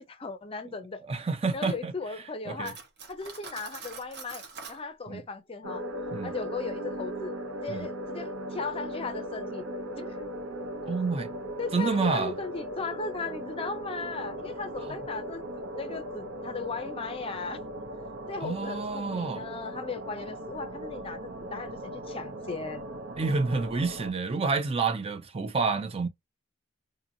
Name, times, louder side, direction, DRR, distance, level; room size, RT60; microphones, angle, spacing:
voice 1, 0.1-1.1 1.5-2.8 3.1-5.8 6.2-9.6 10.0-10.2 11.6-17.6 18.3-21.2 21.5-22.9, left 4 dB, 30° left, 0.5 m, -37 dB
voice 2, 1.1-1.9 2.5-2.7 5.1-5.2 6.1-6.3 7.7-7.9 10.9-11.3 11.7-12.4 18.4-19.4 23.2-26.1, right 4 dB, 30° right, 0.4 m, -28 dB
Cutlery silverware, 2.6-4.8, right 5 dB, 55° right, 0.9 m, -44 dB
sound 1, 5.6-24.1, right 1 dB, 90° right, 0.6 m, -38 dB
2.7 x 2.6 x 2.6 m
head